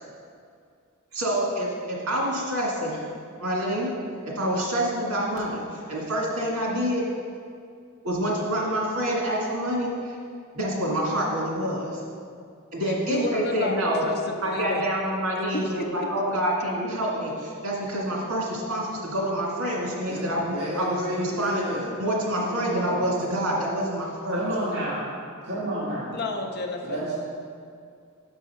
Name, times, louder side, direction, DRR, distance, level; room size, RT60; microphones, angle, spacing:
voice 1, 1.1-3.0 3.4-3.9 4.2-7.0 8.0-10.2 10.5-12.0 12.7-14.0 14.4-21.6 22.0-24.4, equal, 85° right, -3 dB, 1.8 m, -27 dB
voice 2, 12.8-14.9 15.5-16.1 26.1-27.0, left 2 dB, 50° left, 3 dB, 0.6 m, -31 dB
voice 3, 20.5-21.9 22.4-23.0 24.3-25.0 25.4-26.1 26.8-27.1, equal, 55° right, -10 dB, 1.6 m, -30 dB
6.2 x 5.5 x 5.5 m, 2.3 s
head